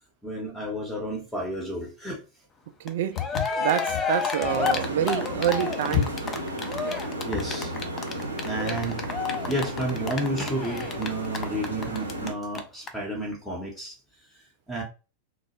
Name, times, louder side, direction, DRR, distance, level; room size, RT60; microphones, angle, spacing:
voice 1, 0.2-2.2 7.2-7.7 8.4-9.0 9.5-14.0 14.3-14.8, right 1 dB, 5° left, 0.8 m, -31 dB
voice 2, 2.8-3.2 3.6-6.2, right 10 dB, 55° right, 0.3 m, -27 dB
Cheering, 2.9-3.0 3.1-12.3 12.5-12.6 12.9-13.0, left 6 dB, 25° left, 0.4 m, -30 dB
Walk footsteps, 3.2-7.6, left 10 dB, 50° left, 0.8 m, -31 dB
sound 1, 4.5-12.3, right 1 dB, 85° right, 0.7 m, -34 dB
2.3 x 2.0 x 2.9 m
figure-of-eight pair, 90°, 0 cm